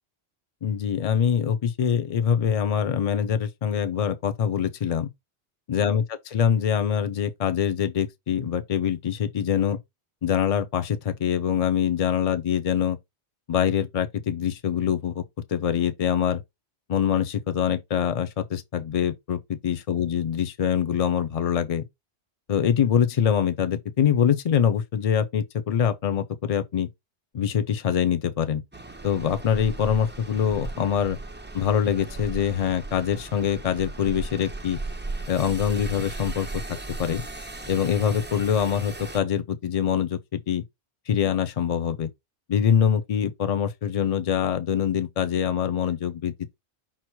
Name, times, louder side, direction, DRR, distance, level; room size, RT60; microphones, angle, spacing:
voice 1, 0.6-5.1 5.7-6.0 6.3-9.8 10.2-13.0 13.5-15.2 15.5-16.4 16.9-21.8 22.5-26.9 27.3-28.6 29.0-31.2 31.5-34.8 35.3-36.5 37.0-37.2 37.7-40.6 41.1-42.1 42.5-46.5, left 8 dB, 40° left, 0.6 m, -24 dB
sound 1, 28.7-39.2, right 2 dB, 15° right, 0.3 m, -37 dB
5.8 x 2.0 x 4.5 m
omnidirectional pair, 1.1 m